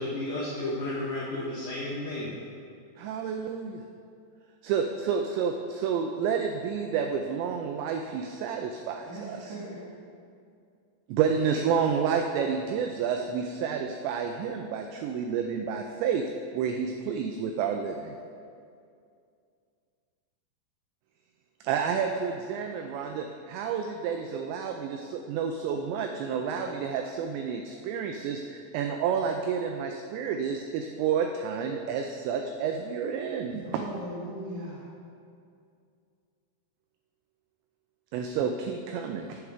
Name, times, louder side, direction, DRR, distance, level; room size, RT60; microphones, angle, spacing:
voice 1, 0.0-2.3, left 1 dB, 85° left, -5 dB, 2.0 m, -32 dB
voice 2, 3.0-3.8 4.6-9.4 11.1-16.2 16.5-18.2 21.6-33.8 38.1-39.4, right 7 dB, 90° right, 4 dB, 2.5 m, -30 dB
voice 3, 9.0-9.8 33.5-34.9, right 1 dB, 65° right, -6 dB, 2.4 m, -39 dB
7.9 x 7.4 x 5.0 m, 2.4 s
omnidirectional pair, 5.6 m